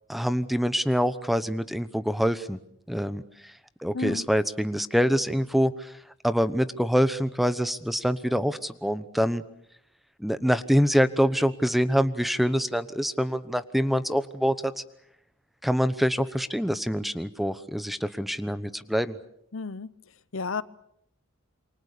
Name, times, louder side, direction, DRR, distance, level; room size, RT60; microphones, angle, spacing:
voice 1, 0.1-2.6 2.9-3.5 3.8-5.9 6.2-9.4 10.2-14.8 15.6-19.2, equal, ahead, 13 dB, 1.0 m, -25 dB
voice 2, 3.9-4.3 19.5-19.9 20.3-20.6, left 4 dB, 80° left, 16 dB, 0.9 m, -31 dB
28.0 x 24.5 x 6.8 m, 0.74 s
head